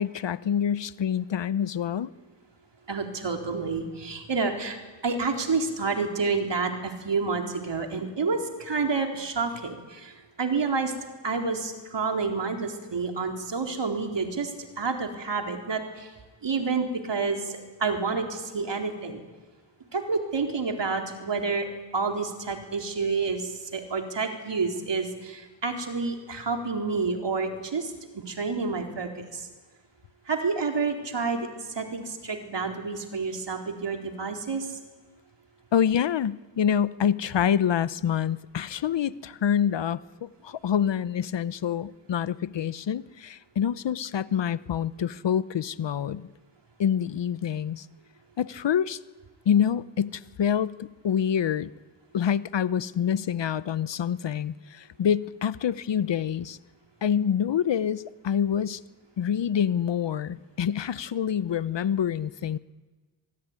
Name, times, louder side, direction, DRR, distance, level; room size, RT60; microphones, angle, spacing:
voice 1, 0.0-2.1 35.7-46.3 46.8-47.9 48.4-49.0 49.5-51.7 52.1-56.6 57.0-58.8 59.2-62.6, left 8 dB, 65° left, 17 dB, 0.9 m, -26 dB
voice 2, 2.9-10.1 10.4-10.9 11.2-16.1 16.4-19.2 19.9-21.7 21.9-29.5 30.3-31.5 31.8-34.8, right 4 dB, 65° right, 3 dB, 4.0 m, -29 dB
24.0 x 23.0 x 9.7 m, 1.3 s
cardioid pair, 55°, 46 cm